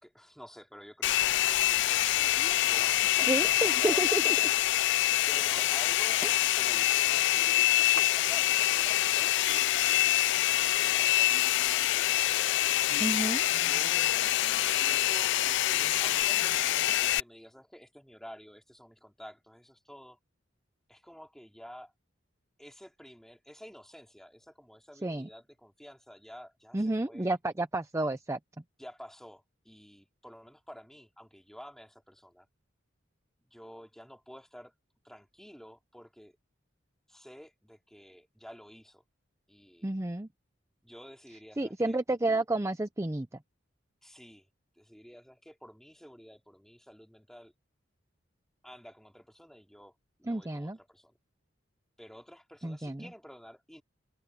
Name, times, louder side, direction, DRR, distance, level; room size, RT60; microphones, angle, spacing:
voice 1, 0.0-6.2 6.5-12.8 13.6-14.1 14.7-20.2 20.9-21.9 22.6-27.4 28.8-32.5 33.4-34.7 35.0-36.4 37.1-39.0 39.5-39.9 40.8-42.0 44.0-44.5 44.8-47.5 48.6-51.1 52.0-53.8, equal, ahead, 4.0 m, -50 dB
Domestic sounds home sounds, 1.0-17.2, left 15 dB, 65° left, 0.4 m, -26 dB
voice 2, 3.3-4.3 6.2-6.5 13.0-13.4 25.0-25.3 26.7-28.4 39.8-40.3 41.6-43.3 50.3-50.8 52.6-53.1, right 2 dB, 15° right, 0.6 m, -31 dB
sound 1, 7.9-17.4, right 5 dB, 70° right, 3.3 m, -54 dB
open air
head